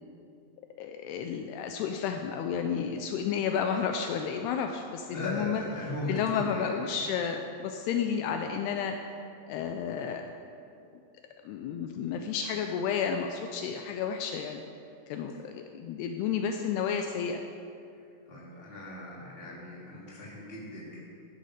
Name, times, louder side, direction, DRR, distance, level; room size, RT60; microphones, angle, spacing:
voice 1, 0.8-5.6 6.1-9.0 9.5-10.3 11.5-14.6 15.1-17.4, left 7 dB, 80° left, 5 dB, 2.5 m, -31 dB
voice 2, 5.1-6.8 18.3-21.0, left 1 dB, 15° left, -6 dB, 2.6 m, -37 dB
15.0 x 10.5 x 5.0 m, 2.5 s
omnidirectional pair, 4.9 m